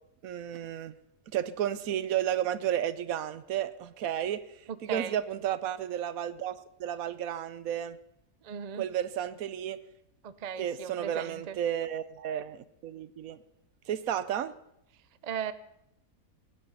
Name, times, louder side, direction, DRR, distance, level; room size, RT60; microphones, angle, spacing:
voice 1, 0.2-1.0 1.3-4.4 4.8-8.0 8.8-9.8 10.6-13.4 13.9-14.5, right 10 dB, 75° right, 1.1 m, -32 dB
voice 2, 8.4-8.8 10.2-11.6 15.2-15.5, right 8 dB, 50° right, 0.5 m, -37 dB
18.5 x 9.7 x 5.5 m
omnidirectional pair, 1.5 m